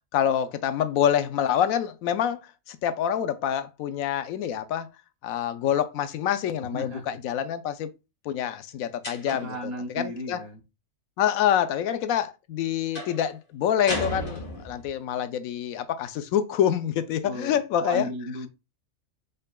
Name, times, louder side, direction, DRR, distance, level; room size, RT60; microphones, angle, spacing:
voice 1, 0.1-2.4 2.7-4.9 5.2-7.9 8.2-9.5 9.9-10.4 11.2-18.1, left 9 dB, 80° left, 1.0 m, -26 dB
voice 2, 6.7-7.2 9.3-10.6 17.2-18.5, equal, 80° right, 1.4 m, -35 dB
sound 1, 9.0-9.6 12.9-13.2 13.9-14.9, left 1 dB, 40° left, 2.0 m, -33 dB
5.0 x 4.4 x 2.3 m
omnidirectional pair, 1.4 m